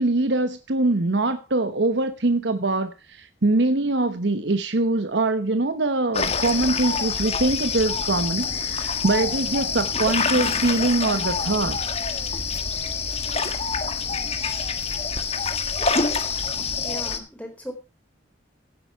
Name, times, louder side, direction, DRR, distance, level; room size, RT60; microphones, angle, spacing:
voice 1, 0.0-12.0, right 2 dB, 75° right, 1.0 m, -23 dB
sound 1, 6.1-17.2, left 5 dB, 35° left, 1.5 m, -26 dB
voice 2, 16.8-17.7, equal, 10° left, 4.2 m, -37 dB
16.0 x 8.9 x 4.7 m
head